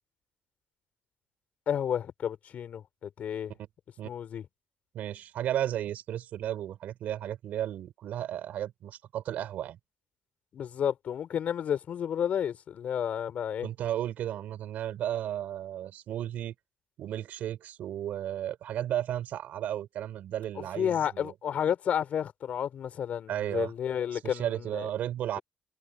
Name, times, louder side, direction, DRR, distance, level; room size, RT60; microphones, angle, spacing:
voice 1, 1.7-3.5 4.0-4.4 10.5-13.7 20.8-24.9, left 9 dB, 60° left, 5.8 m, -31 dB
voice 2, 4.9-9.8 13.6-16.5 17.0-21.3 23.3-23.7 24.1-25.4, right 11 dB, 70° right, 4.7 m, -34 dB
supercardioid pair, 70°, 3 cm